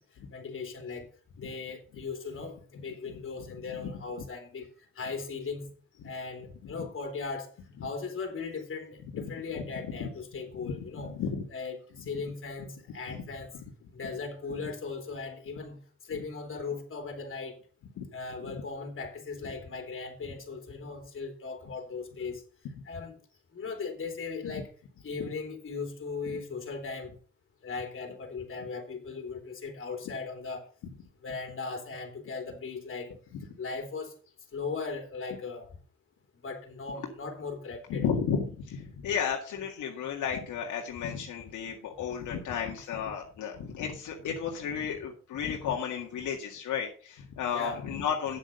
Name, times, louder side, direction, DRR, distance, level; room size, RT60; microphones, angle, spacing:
voice 1, 0.3-1.1 1.4-4.7 4.9-5.7 6.0-7.5 7.8-11.2 11.5-13.5 13.9-15.8 16.1-17.6 18.1-22.4 22.8-23.2 23.5-24.7 25.0-27.1 27.6-30.7 31.2-33.2 33.6-34.1 34.5-35.7 36.4-38.0 47.5-47.8, left 4 dB, 45° left, 3.3 m, -38 dB
voice 2, 3.5-3.9 9.1-9.3 9.6-10.1 10.6-11.4 13.1-13.2 18.0-18.1 18.4-18.5 24.4-24.6 25.2-25.3 26.3-26.4 33.3-33.4 37.9-48.4, left 7 dB, 75° left, 2.0 m, -33 dB
9.0 x 7.9 x 5.3 m
cardioid pair, 90°, 30 cm